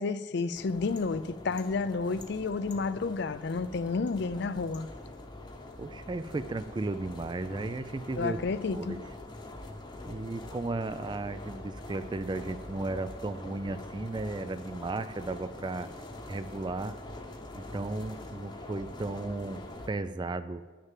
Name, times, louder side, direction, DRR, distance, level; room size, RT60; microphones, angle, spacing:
voice 1, 0.0-4.9 8.2-9.0, left 4 dB, 55° left, 14 dB, 0.4 m, -31 dB
sound 1, 0.5-19.9, left 2 dB, 20° left, 0.9 m, -44 dB
voice 2, 5.8-8.4 8.7-9.0 10.1-15.9 16.3-17.0 17.5-19.6 19.9-20.6, right 2 dB, 20° right, 13 dB, 0.3 m, -35 dB
10.5 x 6.6 x 7.4 m, 1.4 s
head